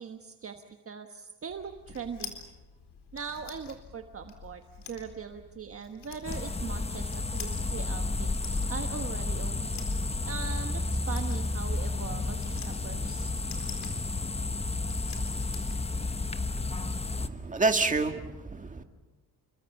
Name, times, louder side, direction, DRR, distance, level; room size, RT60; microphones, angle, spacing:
voice 1, 0.0-2.3 3.1-9.7 10.2-13.3, right 6 dB, 35° right, 6 dB, 1.3 m, -40 dB
sound 1, 1.5-17.7, left 6 dB, 80° left, 4.1 m, -49 dB
sound 2, 6.3-17.3, left 2 dB, 15° left, 1.1 m, -32 dB
voice 2, 17.2-18.8, right 3 dB, 20° right, 5 dB, 2.0 m, -28 dB
29.0 x 23.0 x 7.1 m, 1.1 s
cardioid pair, 135°, 40 cm